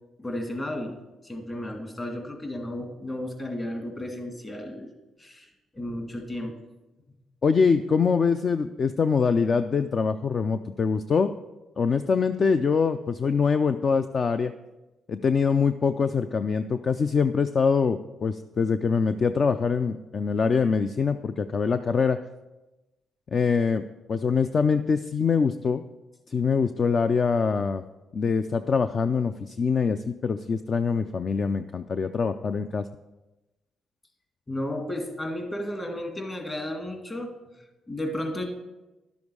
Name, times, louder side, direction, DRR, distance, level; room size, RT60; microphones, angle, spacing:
voice 1, 0.2-4.9 5.2-6.5 34.5-37.3 37.9-38.5, left 1 dB, 25° left, 3 dB, 2.1 m, -33 dB
voice 2, 7.4-11.3 11.8-14.5 15.1-22.2 23.3-23.8 24.1-25.8 26.3-27.8 28.1-32.9, left 5 dB, 45° left, 10 dB, 0.4 m, -24 dB
11.5 x 7.1 x 4.8 m, 1.1 s
cardioid pair, 90°, 0 cm